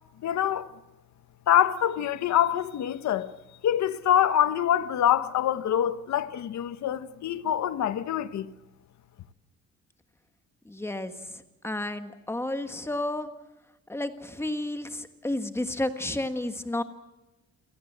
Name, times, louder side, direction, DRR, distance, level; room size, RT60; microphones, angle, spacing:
voice 1, 0.2-0.7 1.5-3.3 3.6-8.5, left 10 dB, 60° left, 1.1 m, -25 dB
voice 2, 10.6-13.3 13.9-16.8, left 1 dB, 10° left, 1.3 m, -32 dB
28.5 x 18.0 x 8.0 m
cardioid pair, 170°, 32 cm